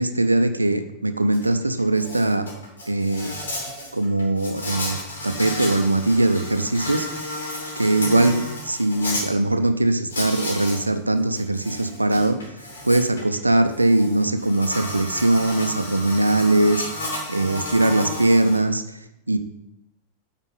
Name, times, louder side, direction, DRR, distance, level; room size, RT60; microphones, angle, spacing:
voice 1, 0.0-2.5 2.9-3.4 3.9-7.2 7.8-12.5 12.8-16.9 17.3-19.4, right 2 dB, 85° right, 10 dB, 0.5 m, -21 dB
Insect, 1.3-1.4 1.8-9.2 10.1-10.8 11.2-18.6, left 1 dB, 70° left, 3.0 m, -32 dB
9.0 x 4.5 x 5.4 m, 0.84 s
figure-of-eight pair, 90°, 0 cm